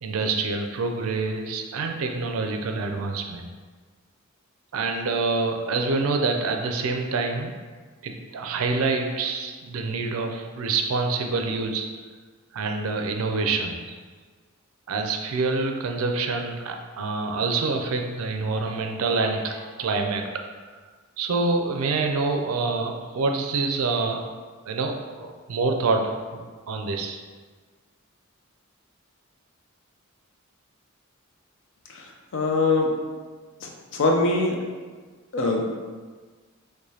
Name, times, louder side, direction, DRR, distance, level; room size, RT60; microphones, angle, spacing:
voice 1, 0.0-3.4 4.7-7.5 8.0-11.9 12.5-13.8 14.9-20.3 21.2-24.3 24.7-27.2, right 3 dB, 75° right, 4 dB, 0.4 m, -26 dB
voice 2, 32.3-32.9 33.6-34.6 35.3-35.7, left 3 dB, 65° left, 1 dB, 0.5 m, -22 dB
4.8 x 2.2 x 2.7 m, 1.5 s
head